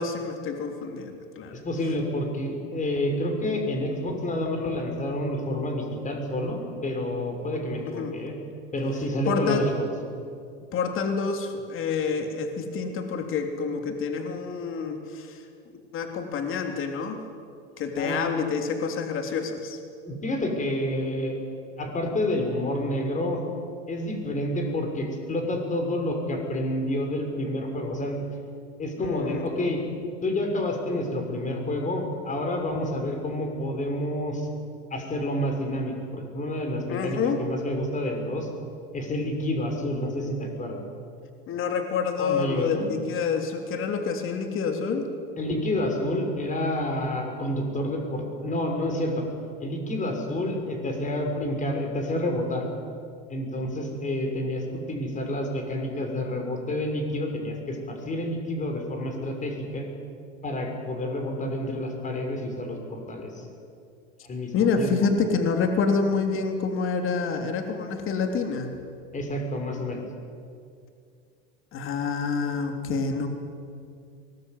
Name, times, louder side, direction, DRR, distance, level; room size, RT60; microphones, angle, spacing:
voice 1, 0.0-1.6 7.8-8.2 9.3-9.7 10.7-15.4 15.9-17.2 17.8-19.8 29.0-29.4 36.9-37.4 41.5-45.1 64.5-68.7 71.7-73.3, left 5 dB, 40° left, 5 dB, 3.4 m, -27 dB
voice 2, 1.6-8.3 8.7-9.8 18.0-18.3 20.0-21.4 21.8-23.4 23.9-28.2 28.8-29.8 30.2-34.5 34.9-38.5 38.9-40.9 42.2-42.9 45.4-49.3 49.6-52.6 53.3-59.9 60.4-63.5 64.2-64.9 69.1-70.0, left 1 dB, 25° left, 3 dB, 6.4 m, -29 dB
23.0 x 20.5 x 9.6 m, 2.3 s
supercardioid pair, 115°, 32 cm